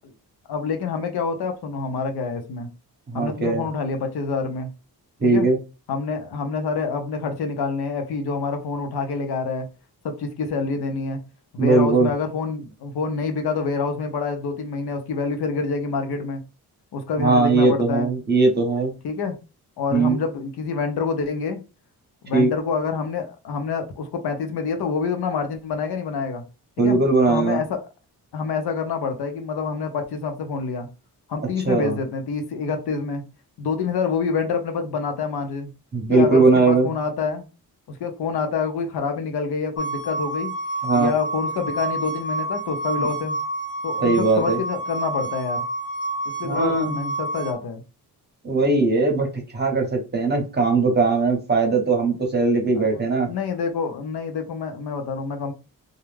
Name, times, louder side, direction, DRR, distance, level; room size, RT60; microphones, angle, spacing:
voice 1, 0.5-2.7 3.1-4.7 5.2-5.5 5.9-9.7 10.0-11.2 11.5-16.4 16.9-18.1 19.0-19.4 19.8-21.6 22.2-26.4 26.8-27.0 27.3-27.8 28.3-30.9 31.3-33.3 33.6-35.7 36.1-37.5 37.9-40.6 40.9-43.4 43.8-45.6 46.4-47.8 52.7-55.5, left 5 dB, 80° left, 5 dB, 0.7 m, -27 dB
voice 2, 3.1-3.6 5.2-5.6 11.6-12.1 17.2-18.9 19.9-20.2 22.3-22.5 26.8-27.6 31.7-32.0 35.9-36.9 40.8-41.1 43.0-43.1 44.0-44.6 46.4-47.1 48.4-53.3, right 3 dB, 25° right, 3 dB, 0.7 m, -19 dB
sound 1, 39.8-47.5, right 2 dB, 40° left, 0.6 m, -29 dB
2.3 x 2.1 x 3.2 m, 0.30 s
wide cardioid pair, 135°, 38 cm